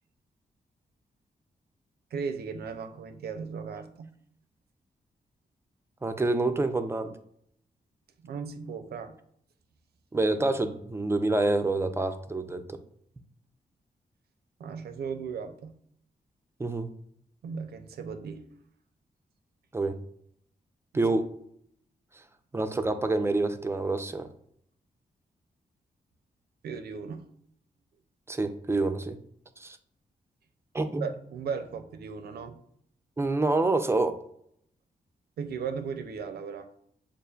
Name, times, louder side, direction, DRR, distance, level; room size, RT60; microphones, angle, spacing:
voice 1, 2.1-4.1 8.2-9.2 14.6-15.8 17.4-18.5 20.9-21.1 26.6-27.3 31.0-32.6 35.4-36.7, right 6 dB, 80° right, 8 dB, 0.5 m, -36 dB
voice 2, 6.0-7.1 10.1-12.8 16.6-16.9 19.7-20.0 20.9-21.3 22.5-24.3 28.3-29.2 29.6-29.8 30.7-31.1 33.2-34.2, right 2 dB, 15° right, 8 dB, 0.3 m, -27 dB
6.4 x 2.5 x 2.3 m, 0.69 s
wide cardioid pair, 135°, 16 cm